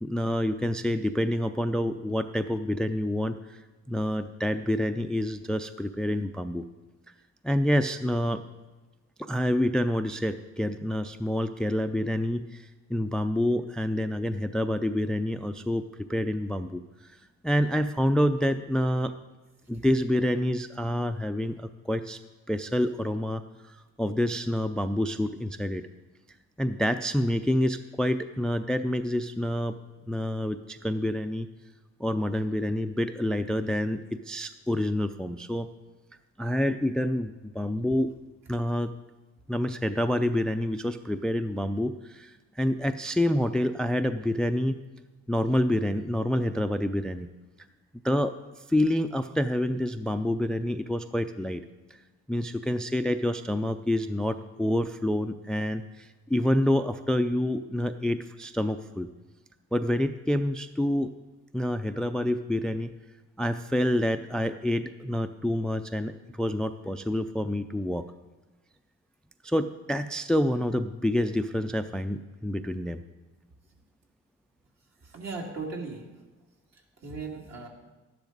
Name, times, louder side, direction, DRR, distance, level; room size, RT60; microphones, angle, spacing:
voice 1, 0.0-6.6 7.4-8.4 9.2-15.8 16.1-17.2 17.4-19.1 19.7-22.2 22.5-25.8 26.6-29.8 30.1-31.5 32.0-35.7 36.4-38.1 38.5-38.9 39.5-44.8 45.3-47.3 48.0-48.3 48.7-51.6 51.9-52.0 52.3-59.1 59.7-61.1 61.5-62.9 63.4-68.0 69.4-73.0, left 1 dB, 5° left, 10 dB, 0.4 m, -27 dB
voice 2, 75.0-76.0 76.7-77.7, right 4 dB, 60° right, -1 dB, 2.5 m, -37 dB
12.0 x 10.5 x 4.0 m, 1.2 s
cardioid pair, 90°, 30 cm